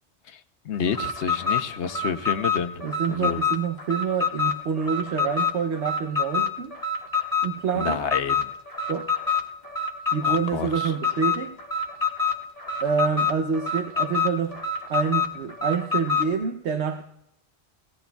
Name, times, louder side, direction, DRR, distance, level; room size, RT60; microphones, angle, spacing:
voice 1, 0.6-2.8 3.1-3.4 7.7-8.5 10.2-10.9, left 7 dB, 85° left, 9 dB, 1.1 m, -29 dB
Alarm, 0.9-16.3, left 5 dB, 35° left, 1.5 m, -27 dB
voice 2, 2.8-6.8 7.4-8.0 8.9-9.1 10.1-11.6 12.8-14.6 14.9-17.0, right 6 dB, 80° right, 6 dB, 1.0 m, -27 dB
17.5 x 17.0 x 2.3 m, 0.82 s
omnidirectional pair, 1.1 m